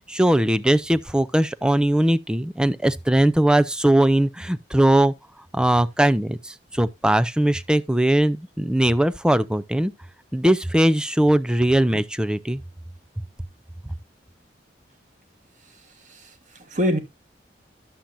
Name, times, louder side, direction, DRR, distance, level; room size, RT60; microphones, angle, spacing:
voice 1, 0.1-5.1 5.5-9.9 10.3-12.6, right 1 dB, 5° right, 0.4 m, -20 dB
voice 2, 15.6-17.0, equal, 45° right, 1.6 m, -27 dB
11.5 x 7.4 x 2.6 m
head